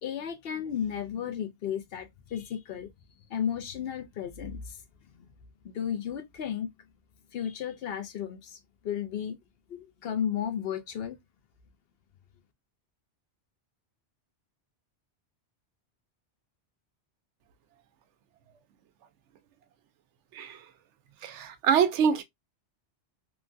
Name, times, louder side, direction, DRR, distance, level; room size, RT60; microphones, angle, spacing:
voice 1, 0.0-2.9 3.3-4.8 5.2-5.3 5.6-6.7 7.3-8.6 8.8-9.4 9.7-11.2, left 8 dB, 65° left, 0.8 m, -33 dB
voice 2, 21.2-22.2, right 7 dB, 90° right, 0.9 m, -25 dB
3.1 x 2.2 x 2.5 m
omnidirectional pair, 1.2 m